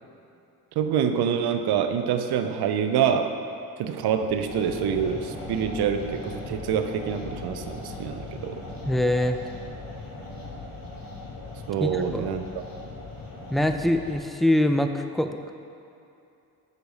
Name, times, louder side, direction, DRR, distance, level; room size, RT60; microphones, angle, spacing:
voice 1, 0.8-3.4 3.8-8.6 11.7-12.4, right 7 dB, 60° right, 8 dB, 0.7 m, -26 dB
sound 1, 4.3-14.2, left 2 dB, 50° left, 1.7 m, -39 dB
voice 2, 8.9-9.5 11.8-12.3 13.5-15.4, left 1 dB, ahead, 6 dB, 0.4 m, -24 dB
9.0 x 3.3 x 5.4 m, 2.7 s
hypercardioid pair, 45°, 43 cm